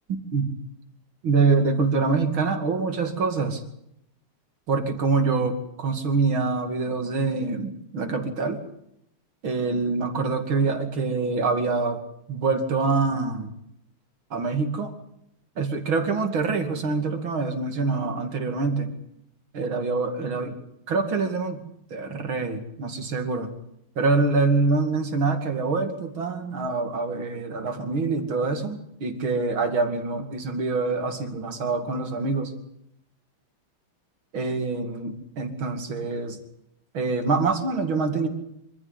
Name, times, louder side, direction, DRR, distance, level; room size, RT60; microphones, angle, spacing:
voice 1, 0.1-0.5 1.2-3.6 4.7-8.6 9.4-12.0 12.3-13.5 14.3-14.9 15.6-18.9 19.5-20.6 20.9-21.6 21.9-23.5 24.0-32.5 34.3-36.4 36.9-38.3, right 4 dB, 70° right, 7 dB, 3.3 m, -25 dB
25.5 x 14.5 x 10.0 m, 0.77 s
omnidirectional pair, 2.3 m